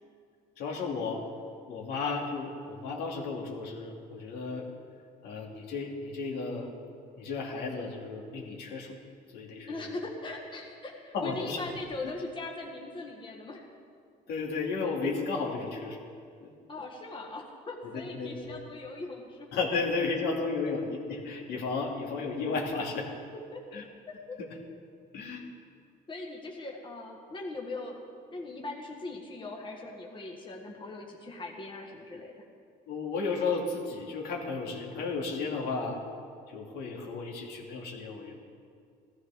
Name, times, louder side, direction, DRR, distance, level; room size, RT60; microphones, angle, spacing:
voice 1, 0.6-1.2 1.7-4.7 5.2-6.7 7.2-8.9 9.3-10.0 11.1-11.6 12.0-12.1 14.3-16.1 16.4-16.5 17.8-18.6 19.5-23.1 23.7-23.8 24.4-24.5 25.1-25.4 32.9-36.0 36.5-38.4, left 4 dB, 75° left, -1 dB, 2.5 m, -33 dB
voice 2, 9.6-13.6 16.7-19.5 20.6-20.7 23.5-23.8 24.3-24.4 26.1-28.0 28.3-32.3, left 2 dB, 30° left, 0 dB, 1.6 m, -40 dB
16.0 x 14.5 x 3.6 m, 2.3 s
cardioid pair, 110°, 17 cm